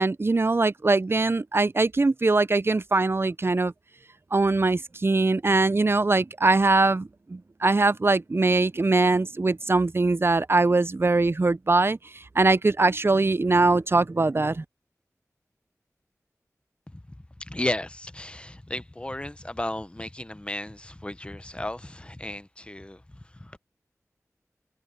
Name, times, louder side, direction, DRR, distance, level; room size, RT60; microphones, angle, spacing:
voice 1, 0.0-3.7 4.3-14.6, right 3 dB, 45° right, 0.5 m, -22 dB
voice 2, 17.4-23.0 23.4-23.5, left 1 dB, 20° left, 0.9 m, -34 dB
wide cardioid pair, 45°, 6 cm